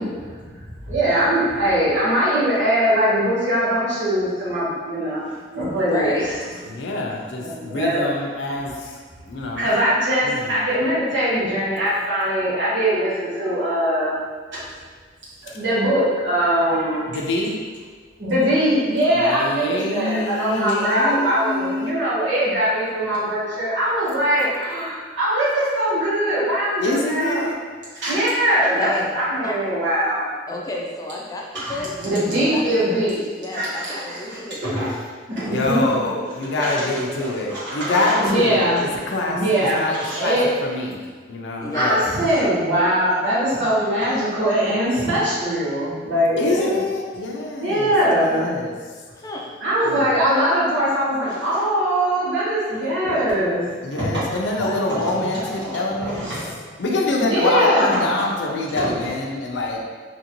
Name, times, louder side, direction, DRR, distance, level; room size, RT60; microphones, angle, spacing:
voice 1, 0.0-6.2 7.4-8.1 9.5-14.2 14.5-14.6 15.4-17.1 18.2-27.5 27.9-30.2 31.5-33.2 33.5-34.9 35.3-35.8 36.6-36.9 37.5-38.8 39.3-40.5 41.7-46.8 47.6-48.5 49.6-53.6 53.9-54.2 54.9-55.2 55.7-56.5 57.2-57.9 58.7-59.0, equal, 85° right, -10 dB, 1.3 m, -22 dB
voice 2, 5.8-6.4 28.7-29.7 30.5-31.9 32.4-34.6 35.4-35.9 36.3-37.4 38.3-38.5 41.6-42.1 49.1-49.5 54.4-56.0 56.9-57.1, left 2 dB, 20° left, -1 dB, 0.4 m, -31 dB
voice 3, 6.7-8.9 9.2-9.7 10.2-10.6 15.5-15.6 17.1-17.6 19.1-21.9 26.8-27.6 35.5-39.4 39.7-41.0 41.3-42.1 46.4-48.7 49.9-50.2 53.8-56.2 56.8-59.8, left 2 dB, 80° left, 0 dB, 0.4 m, -25 dB
2.9 x 2.6 x 2.8 m, 1.5 s
head